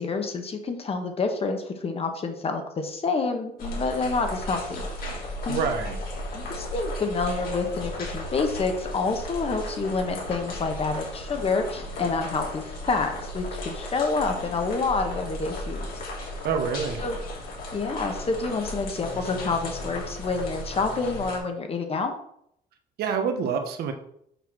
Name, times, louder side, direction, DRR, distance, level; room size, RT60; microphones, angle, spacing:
voice 1, 0.0-4.9 5.4-5.6 6.3-15.9 17.0-17.2 17.7-22.2, left 4 dB, 35° left, 5 dB, 1.4 m, -28 dB
sound 1, 3.6-21.4, left 1 dB, 60° left, 2.9 m, -35 dB
voice 2, 5.5-6.0 16.4-17.0 23.0-23.9, right 6 dB, 70° right, 6 dB, 1.3 m, -26 dB
6.7 x 4.8 x 6.2 m, 0.73 s
cardioid pair, 110°, 17 cm